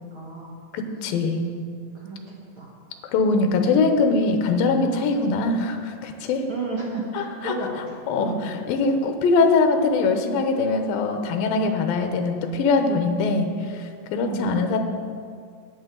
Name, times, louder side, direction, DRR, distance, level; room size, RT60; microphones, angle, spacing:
voice 1, 0.0-0.6 1.9-2.7 3.5-3.6 6.5-8.4 14.2-14.5, right 2 dB, 55° right, -4 dB, 1.6 m, -33 dB
voice 2, 0.7-1.5 3.1-6.4 7.1-7.6 8.1-14.8, left 3 dB, 75° left, 6 dB, 2.6 m, -22 dB
16.0 x 9.0 x 3.9 m, 2.2 s
omnidirectional pair, 4.3 m